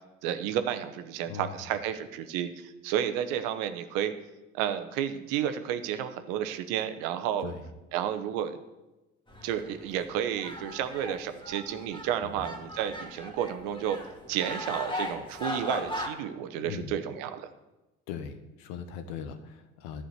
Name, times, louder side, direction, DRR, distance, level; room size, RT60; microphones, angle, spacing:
voice 1, 0.2-4.1 4.5-7.5 7.9-8.6 9.4-14.0 14.3-17.5, right 9 dB, 75° right, 10 dB, 1.0 m, -31 dB
sound 1, 9.3-16.1, left 1 dB, 15° left, 2.0 m, -38 dB
voice 2, 16.6-17.0 18.1-20.1, left 7 dB, 75° left, 8 dB, 1.2 m, -40 dB
11.5 x 5.0 x 8.0 m, 1.0 s
hypercardioid pair, 65°, 34 cm